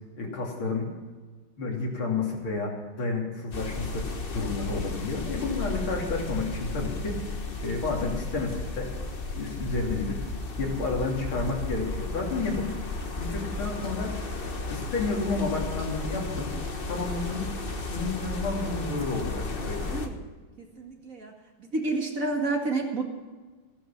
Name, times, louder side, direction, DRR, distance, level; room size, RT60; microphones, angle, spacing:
voice 1, 0.2-0.9 1.6-4.1 4.3-7.2 7.6-8.9 9.3-10.3 10.6-12.7 13.2-14.1 14.7-16.5 16.9-19.9, left 3 dB, 90° left, -1 dB, 3.9 m, -31 dB
sound 1, 3.5-20.1, left 2 dB, 35° left, 1.2 m, -34 dB
voice 2, 19.8-20.2 20.6-21.3 21.6-23.0, right 3 dB, 40° right, 2 dB, 2.4 m, -30 dB
15.5 x 11.5 x 5.9 m, 1.3 s
omnidirectional pair, 2.2 m